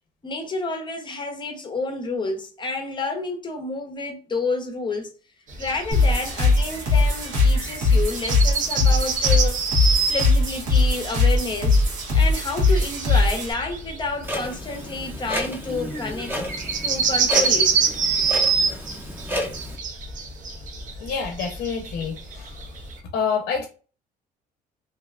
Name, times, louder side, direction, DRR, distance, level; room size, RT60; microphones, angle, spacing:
voice 1, 0.2-5.2 5.6-9.7 10.1-11.8 12.1-17.8, left 3 dB, 30° left, 0.7 m, -30 dB
sound 1, 5.5-22.9, right 5 dB, 50° right, 0.7 m, -26 dB
sound 2, 5.9-13.5, left 3 dB, 85° right, 1.0 m, -20 dB
Clock, 14.2-19.8, equal, 10° right, 0.7 m, -32 dB
voice 2, 21.0-22.7 23.1-23.7, left 6 dB, 75° left, 0.6 m, -27 dB
2.6 x 2.2 x 2.3 m
cardioid pair, 110°, 17 cm